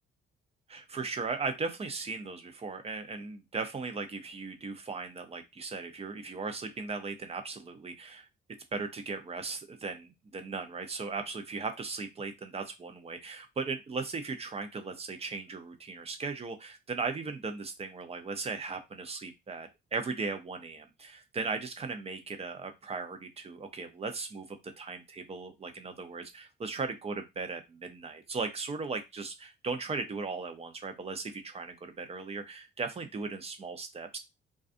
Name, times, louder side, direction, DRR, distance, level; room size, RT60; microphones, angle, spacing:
voice 1, 0.7-8.3 8.7-34.2, right 4 dB, 30° right, 7 dB, 0.5 m, -37 dB
2.5 x 2.3 x 2.5 m, 0.23 s
cardioid pair, 90°, 20 cm